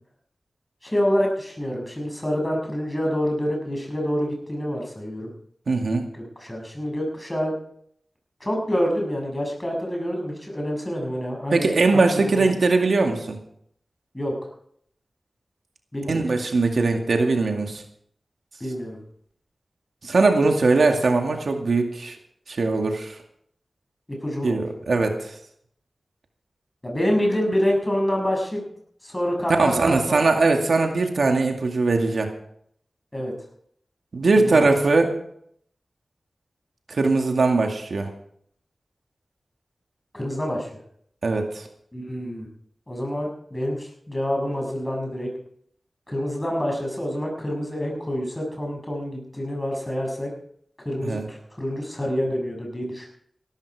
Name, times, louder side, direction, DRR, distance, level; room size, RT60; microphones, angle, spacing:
voice 1, 0.8-5.3 6.1-7.5 8.4-12.5 14.1-14.3 15.9-16.3 18.6-19.0 24.1-24.7 26.8-28.6 29.0-30.2 33.1-33.3 34.4-34.7 40.1-40.7 41.9-42.5 42.9-45.3 46.1-50.3 50.8-53.1, equal, 20° left, 0 dB, 7.1 m, -27 dB
voice 2, 5.7-6.1 11.5-13.4 16.1-17.8 20.0-22.2 22.5-23.2 24.4-25.3 29.6-32.3 34.1-35.2 36.9-38.1 41.2-41.6 51.0-51.2, right 3 dB, 80° right, 3 dB, 2.2 m, -21 dB
16.5 x 14.0 x 4.9 m, 0.67 s
wide cardioid pair, 55°, 0 cm